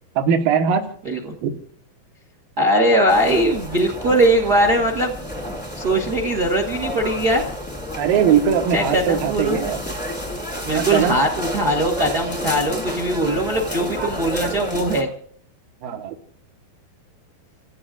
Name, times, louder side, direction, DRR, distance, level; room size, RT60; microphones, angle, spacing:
voice 1, 0.1-0.9 1.4-1.5 8.0-9.8 10.7-11.2 15.8-16.2, right 8 dB, 70° right, 4 dB, 3.1 m, -20 dB
voice 2, 2.6-5.1 5.7-7.4 8.7-9.6 10.6-15.1, right 1 dB, 50° right, 1 dB, 1.1 m, -20 dB
sound 1, 3.1-15.0, equal, 5° left, 1.1 m, -30 dB
30.0 x 17.0 x 2.5 m, 0.62 s
omnidirectional pair, 4.4 m